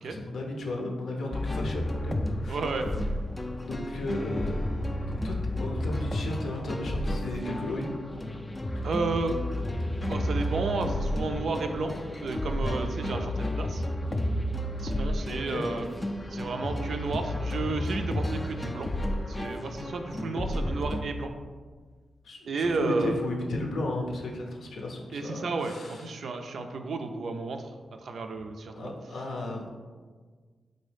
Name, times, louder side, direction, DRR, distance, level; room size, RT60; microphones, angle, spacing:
voice 1, 0.0-2.6 3.7-4.6 5.2-7.9 8.7-8.9 15.5-15.8 22.2-26.1 28.7-29.7, left 2 dB, 80° left, 0 dB, 0.6 m, -34 dB
sound 1, 1.3-21.0, left 1 dB, 25° left, 0.3 m, -31 dB
voice 2, 2.5-2.9 8.8-9.4 10.1-13.8 14.8-15.8 16.3-18.9 19.3-21.3 22.5-23.2 25.1-27.7 28.0-28.9, right 3 dB, 70° right, 6 dB, 0.3 m, -32 dB
3.9 x 2.7 x 3.3 m, 1.5 s
cardioid pair, 60°, 0 cm